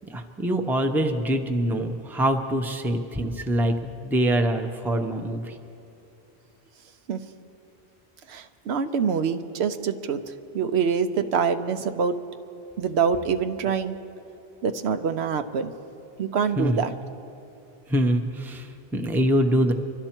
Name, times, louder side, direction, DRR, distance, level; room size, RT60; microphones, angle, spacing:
voice 1, 0.1-5.6 16.6-16.8 17.9-19.7, right 1 dB, ahead, 5 dB, 0.6 m, -24 dB
voice 2, 8.3-10.2 10.5-12.2 12.8-14.0 14.6-15.7 16.2-16.9, right 6 dB, 80° right, 9 dB, 0.9 m, -25 dB
24.5 x 12.5 x 4.4 m, 2.8 s
omnidirectional pair, 1.1 m